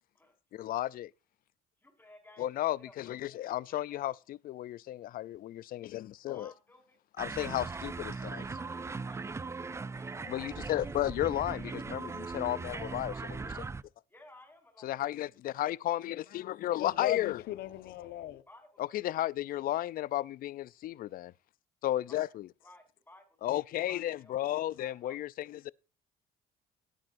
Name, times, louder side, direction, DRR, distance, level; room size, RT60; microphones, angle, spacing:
voice 1, 0.5-1.1 2.4-6.5 7.2-8.4 10.3-13.6 14.8-17.4 18.8-21.3 21.8-22.5 23.4-25.7, left 13 dB, 60° left, 0.5 m, -34 dB
voice 2, 1.8-2.5 2.8-3.2 3.6-4.2 6.3-7.0 8.4-10.8 11.2-11.8 14.1-14.9 15.9-16.3 18.5-19.1 22.1-22.3 22.6-25.2, left 1 dB, 10° left, 4.9 m, -58 dB
sound 1, 7.2-13.8, right 4 dB, 15° right, 0.4 m, -39 dB
voice 3, 16.8-18.4, left 13 dB, 75° left, 1.2 m, -36 dB
17.0 x 8.9 x 2.6 m
cardioid pair, 110°, 17 cm